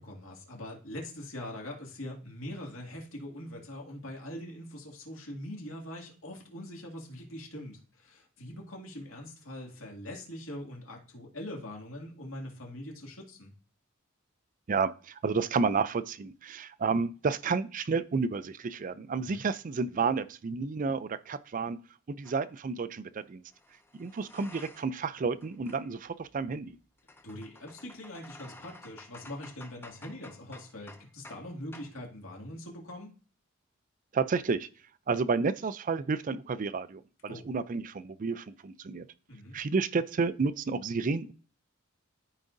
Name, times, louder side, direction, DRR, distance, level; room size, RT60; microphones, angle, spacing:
voice 1, 0.0-13.5 19.1-19.4 27.2-33.1 37.3-37.4 39.3-39.6, left 1 dB, 80° left, 2.3 m, -42 dB
voice 2, 14.7-21.8 22.1-23.4 23.9-26.8 34.1-34.7 35.1-39.1 39.5-41.3, right 4 dB, 40° right, 0.4 m, -31 dB
sound 1, 22.2-22.4 23.5-25.1 25.3-31.5 31.7-32.0, left 2 dB, 10° left, 0.5 m, -53 dB
13.0 x 4.8 x 2.6 m
head